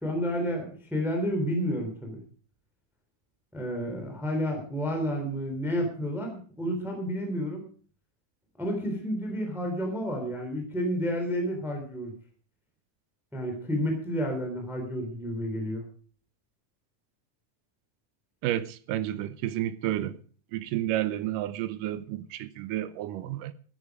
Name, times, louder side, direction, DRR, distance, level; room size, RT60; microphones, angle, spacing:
voice 1, 0.0-2.2 3.5-7.6 8.6-12.1 13.3-15.8, equal, ahead, 2.9 m, -30 dB
voice 2, 18.4-20.2 20.5-23.5, right 13 dB, 85° right, 2.5 m, -31 dB
14.5 x 10.5 x 4.8 m
omnidirectional pair, 3.7 m